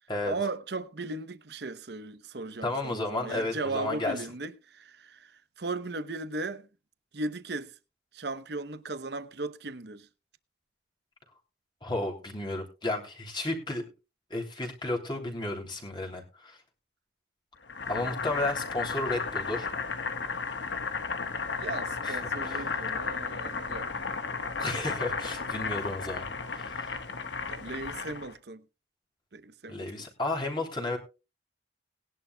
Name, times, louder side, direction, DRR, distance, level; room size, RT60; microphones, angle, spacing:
voice 1, 0.2-6.7 7.1-7.7 8.1-10.1 18.0-18.1 21.5-23.9 27.5-28.6 29.3-29.9, right 3 dB, 60° right, 0.9 m, -37 dB
voice 2, 2.6-4.2 11.8-13.8 14.3-16.6 17.9-19.7 22.0-22.7 24.6-26.8 29.7-31.0, left 2 dB, 25° left, 3.1 m, -33 dB
Boiling, 17.7-28.3, left 4 dB, 75° left, 1.4 m, -34 dB
19.5 x 11.0 x 2.3 m
head